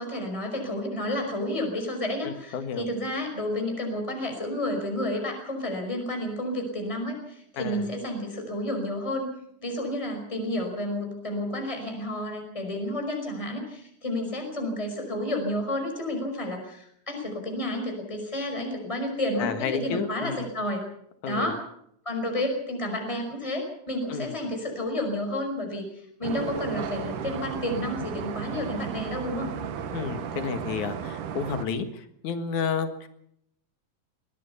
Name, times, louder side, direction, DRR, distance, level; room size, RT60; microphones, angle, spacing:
voice 1, 0.0-9.3 9.6-20.8 21.2-21.6 22.0-29.5, left 1 dB, 10° left, 3 dB, 5.1 m, -31 dB
voice 2, 2.2-2.9 7.6-7.9 19.4-20.5 21.2-21.5 24.1-24.4 29.9-33.1, left 6 dB, 75° left, 9 dB, 3.1 m, -31 dB
sound 1, 26.2-31.7, right 7 dB, 85° right, 3.0 m, -34 dB
22.0 x 17.5 x 7.0 m, 0.73 s
omnidirectional pair, 3.5 m